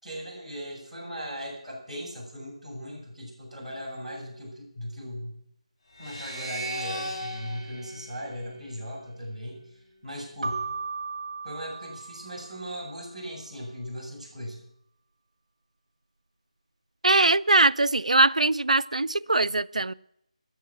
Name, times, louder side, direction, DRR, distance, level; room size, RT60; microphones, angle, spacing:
voice 1, 0.0-5.3 6.0-9.6 10.0-10.7 11.4-14.6, equal, ahead, -13 dB, 6.6 m, -38 dB
sound 1, 6.0-9.3, right 1 dB, 55° left, 5.1 m, -37 dB
Keyboard (musical), 10.4-13.0, right 4 dB, 60° right, 1.7 m, -36 dB
voice 2, 17.0-19.9, right 2 dB, 85° right, 18 dB, 0.5 m, -21 dB
15.0 x 11.0 x 6.1 m, 0.74 s
figure-of-eight pair, 165°, 4 cm